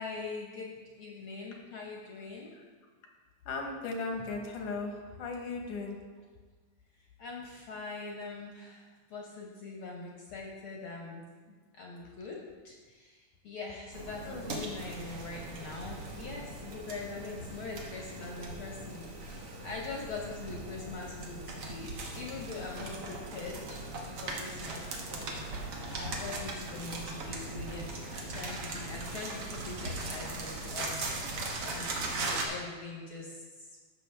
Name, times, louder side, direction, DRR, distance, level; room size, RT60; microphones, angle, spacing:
voice 1, 0.0-2.5 7.0-11.2 11.7-12.4 12.6-19.3 19.6-25.3 25.9-30.9 31.6-33.7, left 3 dB, 60° left, -2 dB, 1.5 m, -43 dB
voice 2, 3.5-6.0 14.2-14.6, left 3 dB, 80° left, 2 dB, 2.6 m, -37 dB
sound 1, 13.9-32.5, right 2 dB, 60° right, 1.9 m, -39 dB
14.0 x 6.1 x 3.4 m, 1.4 s
omnidirectional pair, 3.4 m